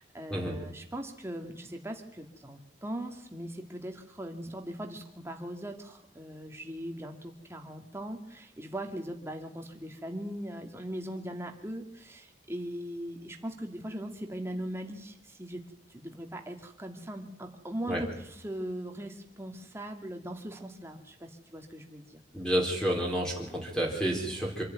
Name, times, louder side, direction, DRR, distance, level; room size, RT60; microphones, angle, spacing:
voice 1, 0.0-15.6 15.9-22.2, right 1 dB, 15° right, 3 dB, 2.4 m, -40 dB
voice 2, 22.3-24.6, equal, 5° left, -1 dB, 4.0 m, -30 dB
26.5 x 11.5 x 9.5 m, 0.83 s
head